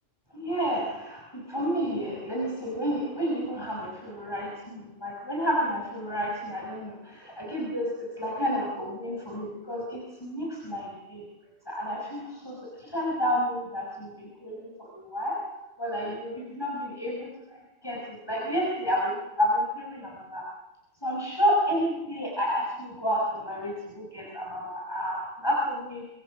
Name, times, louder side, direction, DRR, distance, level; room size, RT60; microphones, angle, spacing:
voice 1, 0.3-11.2 11.7-15.4 15.8-20.5 21.0-26.0, equal, 20° left, -3 dB, 5.8 m, -30 dB
26.0 x 25.5 x 6.5 m, 0.98 s
omnidirectional pair, 1.3 m